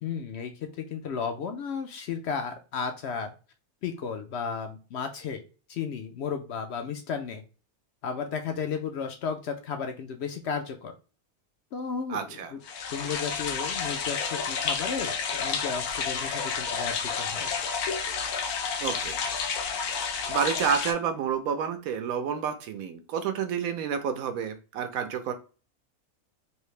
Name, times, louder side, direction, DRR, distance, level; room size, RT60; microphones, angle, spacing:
voice 1, 0.0-3.3 3.8-5.4 5.7-7.4 8.0-10.9 11.7-12.6 12.9-17.5, left 6 dB, 65° left, 6 dB, 0.6 m, -34 dB
voice 2, 12.1-12.5 18.8-19.2 19.8-25.3, right 7 dB, 75° right, 8 dB, 1.0 m, -30 dB
sound 1, 12.6-20.9, left 6 dB, 85° left, 1.1 m, -30 dB
3.2 x 2.7 x 3.1 m, 0.34 s
omnidirectional pair, 1.5 m